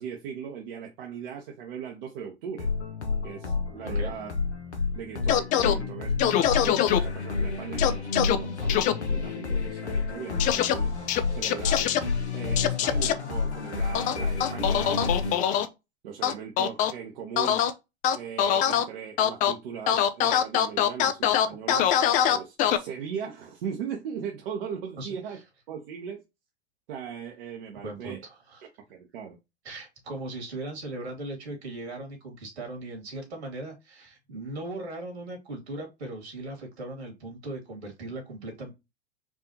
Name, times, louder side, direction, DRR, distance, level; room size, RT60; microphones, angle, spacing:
voice 1, 0.0-2.7 3.2-4.3 4.9-10.9 11.3-12.1 12.3-15.7 16.0-17.6 18.1-21.9 22.3-25.4 25.7-26.2 26.9-28.2 28.9-29.4, right 7 dB, 55° right, 1.0 m, -38 dB
sound 1, 2.6-15.4, left 4 dB, 85° left, 1.0 m, -30 dB
sound 2, 5.3-5.8 6.2-7.0 7.8-8.4 8.7-8.9 10.4-10.7 11.1-12.0 12.6-13.1 13.9-15.7 16.2-16.9 17.4-17.7 18.0-18.8 19.2-19.5 19.9-22.8, left 10 dB, 25° left, 0.4 m, -23 dB
voice 2, 27.8-28.7 29.6-38.7, right 2 dB, 70° right, 2.3 m, -38 dB
4.7 x 2.7 x 2.8 m
figure-of-eight pair, 95°, 33 cm